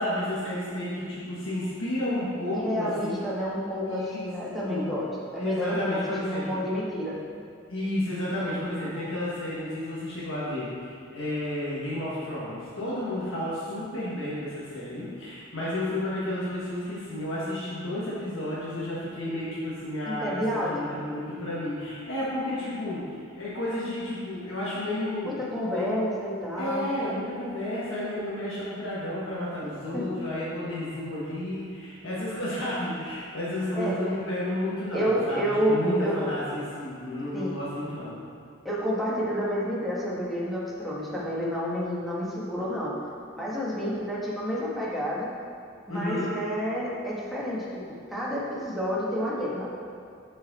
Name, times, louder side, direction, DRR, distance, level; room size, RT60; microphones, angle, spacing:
voice 1, 0.0-3.2 3.9-4.2 4.7-4.9 5.4-6.6 7.7-23.0 23.3-25.3 25.6-26.0 26.5-38.2 45.9-46.3, left 1 dB, 75° left, -9 dB, 1.5 m, -32 dB
voice 2, 2.5-5.0 5.3-7.1 20.1-20.9 25.2-26.8 29.9-30.0 33.7-34.0 34.9-36.3 37.3-37.5 38.6-42.9 43.4-45.3 45.9-47.8 48.1-49.8, equal, ahead, -7 dB, 1.4 m, -29 dB
6.2 x 6.1 x 4.1 m, 2.2 s
head